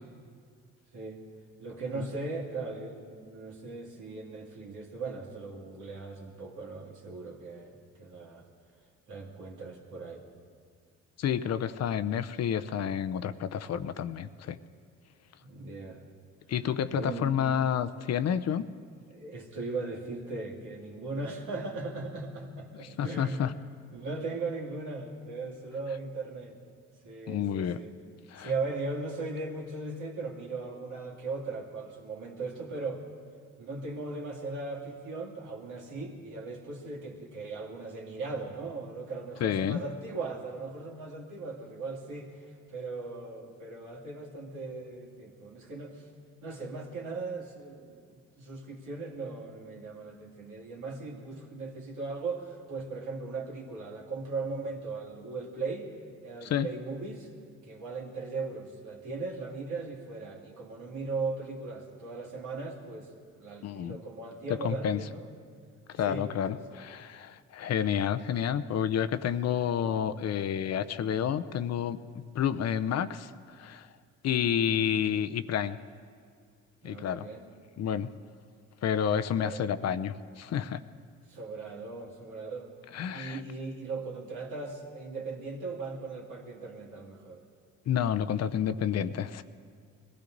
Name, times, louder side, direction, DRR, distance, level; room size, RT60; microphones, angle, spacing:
voice 1, 0.9-1.2 1.6-8.4 9.1-10.2 15.4-16.0 16.9-17.4 19.1-23.5 23.9-26.6 27.0-28.0 28.4-33.0 33.6-46.1 46.4-55.9 56.2-57.3 57.6-63.1 63.4-65.4 66.0-66.8 74.7-74.9 76.8-77.4 79.3-79.7 81.3-82.7 83.1-87.4, right 3 dB, 80° right, -2 dB, 2.6 m, -38 dB
voice 2, 11.2-14.6 16.5-18.6 22.8-23.5 27.3-27.8 28.3-28.5 39.4-39.8 56.4-56.7 63.6-64.0 64.6-65.0 65.9-72.0 72.3-73.3 73.6-73.9 74.2-75.8 76.8-77.3 77.8-78.1 78.8-80.8 82.9-83.4 87.9-89.4, left 8 dB, 55° left, 12 dB, 0.7 m, -29 dB
21.0 x 15.0 x 4.0 m, 2.1 s
cardioid pair, 90°, 30 cm